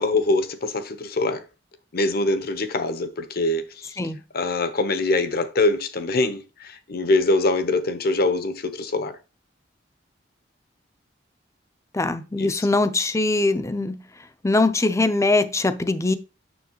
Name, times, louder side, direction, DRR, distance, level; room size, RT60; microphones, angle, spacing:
voice 1, 0.0-1.4 1.9-3.9 4.3-9.2 12.4-12.7, left 2 dB, 55° left, 0.8 m, -23 dB
voice 2, 11.9-14.0 14.4-16.2, left 2 dB, 15° left, 0.5 m, -22 dB
7.0 x 6.3 x 2.9 m
head